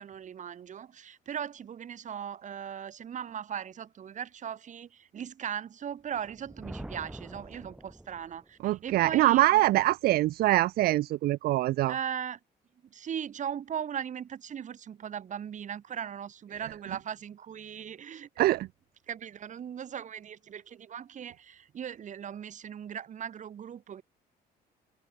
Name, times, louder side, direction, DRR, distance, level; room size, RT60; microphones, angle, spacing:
voice 1, 0.0-9.6 11.9-12.4 12.9-18.5 19.1-24.0, right 8 dB, 45° right, 3.7 m, -38 dB
Thunder, 6.1-8.6, right 1 dB, 5° right, 0.9 m, -45 dB
voice 2, 8.6-11.9 18.4-18.7, right 16 dB, 65° right, 0.5 m, -24 dB
cardioid pair, 110°, 17 cm